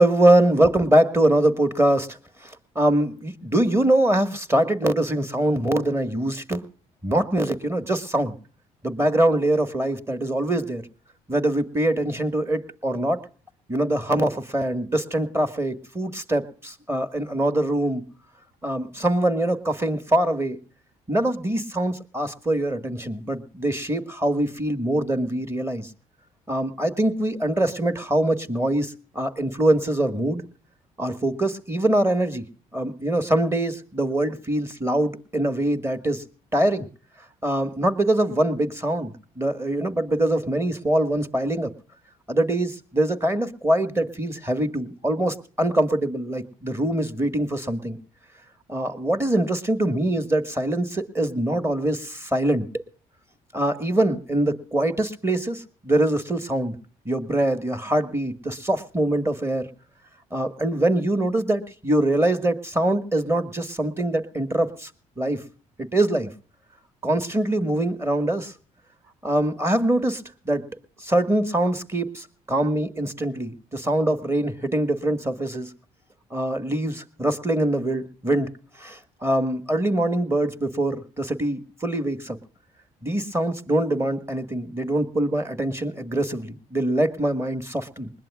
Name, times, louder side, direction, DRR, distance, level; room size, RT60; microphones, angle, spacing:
voice 1, 0.0-2.2 2.4-6.6 7.0-8.3 8.8-10.8 11.3-13.2 13.7-18.0 18.6-20.6 21.1-25.9 26.5-30.4 31.0-32.4 32.7-36.2 36.5-36.9 37.4-41.7 42.3-48.0 48.7-52.8 53.5-56.8 57.1-59.6 60.3-64.9 65.2-65.4 65.8-66.3 67.0-68.5 69.2-70.6 71.0-75.7 76.3-78.5 78.8-82.4 83.0-88.1, right 1 dB, 15° right, 10 dB, 1.8 m, -23 dB
20.5 x 20.5 x 2.4 m, 0.40 s
supercardioid pair, 65°, 17 cm